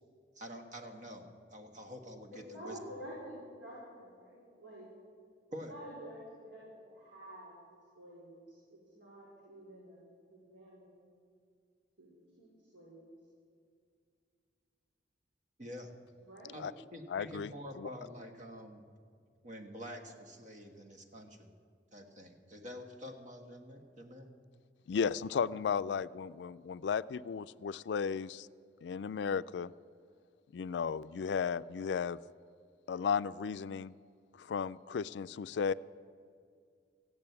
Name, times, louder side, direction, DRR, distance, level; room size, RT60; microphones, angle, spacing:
voice 1, 0.3-2.8 5.5-5.7 15.6-15.9 16.5-16.7 16.9-18.8 19.4-21.5 21.9-24.3, equal, 45° right, 5 dB, 1.5 m, -47 dB
voice 2, 2.3-4.9 5.5-7.6 7.9-10.0 10.3-10.9 12.0-13.1 16.2-16.6, equal, 80° right, -6 dB, 4.4 m, -50 dB
voice 3, 17.1-17.9 24.9-28.5 28.8-29.7 30.5-32.2 32.9-33.9 34.4-35.7, left 6 dB, 70° left, 16 dB, 0.4 m, -34 dB
14.5 x 8.9 x 9.5 m, 2.2 s
head